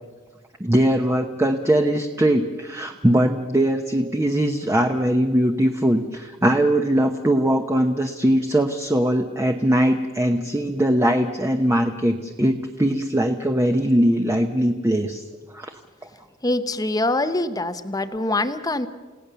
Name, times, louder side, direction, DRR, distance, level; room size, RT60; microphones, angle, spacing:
voice 1, 0.6-15.2 15.5-15.7, right 1 dB, 15° right, 4 dB, 0.9 m, -21 dB
voice 2, 16.4-18.9, left 2 dB, 20° left, 11 dB, 0.9 m, -24 dB
30.0 x 17.0 x 6.9 m, 1.4 s
head